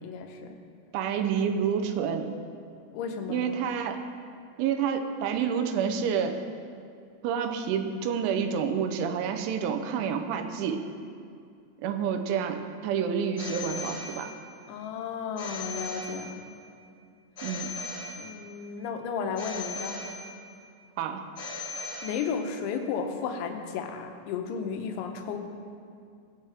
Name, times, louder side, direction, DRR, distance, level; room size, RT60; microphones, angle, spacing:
voice 1, 0.0-0.6 2.9-3.5 14.7-16.4 18.2-20.0 22.0-25.4, left 6 dB, 80° left, 5 dB, 3.2 m, -33 dB
voice 2, 0.9-2.4 3.3-4.0 4.6-6.4 7.2-10.8 11.8-14.3 17.4-17.7 21.0-21.2, right 7 dB, 80° right, 7 dB, 3.1 m, -28 dB
Telephone, 13.4-14.6 15.4-16.6 17.4-18.6 19.4-20.6 21.4-22.6, left 3 dB, 35° left, 3.1 m, -39 dB
20.0 x 9.1 x 3.5 m, 2.4 s
omnidirectional pair, 5.5 m